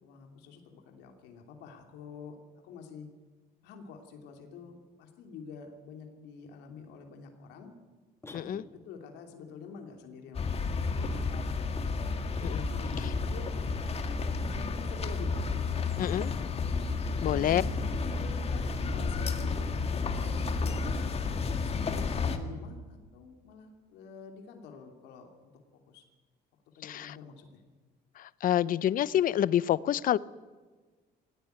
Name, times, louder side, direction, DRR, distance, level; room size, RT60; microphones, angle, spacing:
voice 1, 0.0-2.4 2.6-3.1 3.6-7.7 8.3-11.8 12.6-13.5 14.5-15.4 17.2-21.2 21.6-21.9 22.2-25.5 25.9-26.0 26.8-27.6, left 5 dB, 90° left, 4 dB, 3.0 m, -47 dB
sound 1, 8.2-9.1, left 2 dB, 15° left, 2.7 m, -49 dB
sound 2, 10.3-22.4, left 4 dB, 35° left, 2.1 m, -31 dB
voice 2, 16.0-16.3 17.2-17.6 26.8-27.1 28.2-30.2, left 11 dB, 55° left, 19 dB, 0.7 m, -28 dB
18.0 x 17.5 x 9.4 m, 1.3 s
cardioid pair, 110°, 17 cm